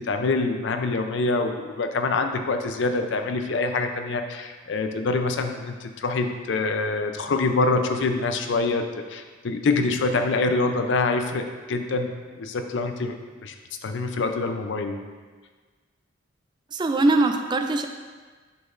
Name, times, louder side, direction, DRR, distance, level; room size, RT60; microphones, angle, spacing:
voice 1, 0.0-12.1 12.4-13.1 13.4-13.5 13.8-15.0, left 3 dB, 65° left, 6 dB, 0.5 m, -25 dB
voice 2, 16.7-17.9, right 2 dB, 20° right, 6 dB, 0.3 m, -21 dB
7.9 x 6.2 x 2.5 m, 1.4 s
head